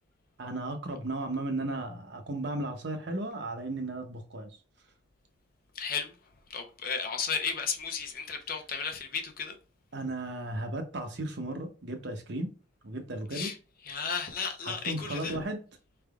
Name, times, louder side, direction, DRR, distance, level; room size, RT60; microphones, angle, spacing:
voice 1, 0.4-4.5 9.9-12.5 12.8-13.5 14.6-15.6, right 2 dB, 55° right, 0.8 m, -35 dB
voice 2, 5.7-6.1 6.5-9.6 13.3-13.6 13.8-15.4, left 6 dB, 45° left, 0.6 m, -34 dB
4.6 x 3.4 x 2.4 m
head